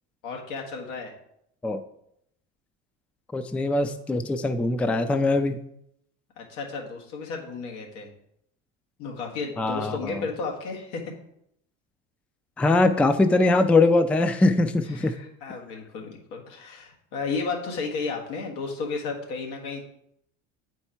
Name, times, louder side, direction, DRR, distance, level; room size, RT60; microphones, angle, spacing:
voice 1, 0.2-1.1 6.4-8.1 9.0-11.1 14.9-19.8, left 4 dB, 90° left, 1 dB, 1.7 m, -33 dB
voice 2, 3.3-5.6 9.6-10.2 12.6-15.1, left 2 dB, 5° left, 10 dB, 0.3 m, -22 dB
7.8 x 4.6 x 4.3 m, 0.75 s
supercardioid pair, 110°, 35 cm